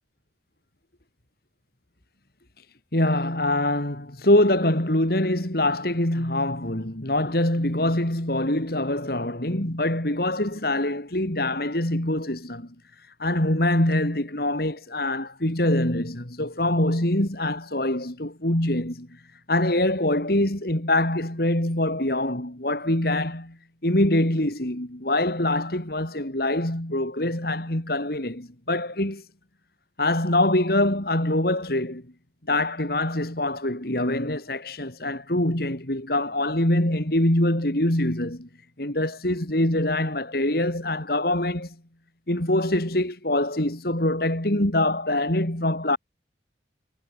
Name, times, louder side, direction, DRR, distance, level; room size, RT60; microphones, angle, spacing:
voice 1, 2.9-12.7 13.2-19.1 19.5-23.6 23.8-29.2 30.0-32.0 32.5-38.5 38.8-41.7 42.3-46.0, left 1 dB, 55° left, 3.3 m, -24 dB
head